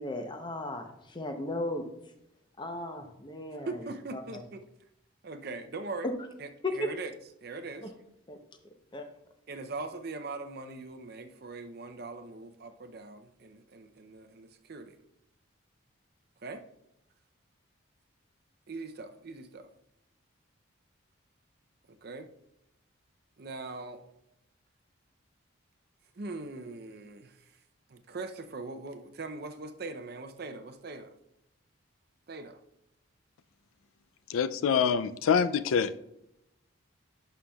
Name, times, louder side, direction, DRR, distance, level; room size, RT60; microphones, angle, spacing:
voice 1, 0.0-1.9 2.6-3.8 4.1-4.4 6.0-6.1 6.6-6.9 7.8-7.9 8.3-8.4 8.9-9.1, left 1 dB, 20° left, 5 dB, 0.7 m, -35 dB
voice 2, 3.6-4.6 5.2-6.1 6.4-7.1 7.4-7.9 9.5-15.0 16.4-16.6 18.7-19.7 22.0-22.3 23.4-24.0 26.2-27.5 27.9-31.1 32.3-32.6, right 3 dB, 50° right, 8 dB, 0.5 m, -41 dB
voice 3, 34.3-35.9, left 7 dB, 80° left, 13 dB, 0.4 m, -25 dB
11.0 x 5.7 x 2.3 m, 0.84 s
head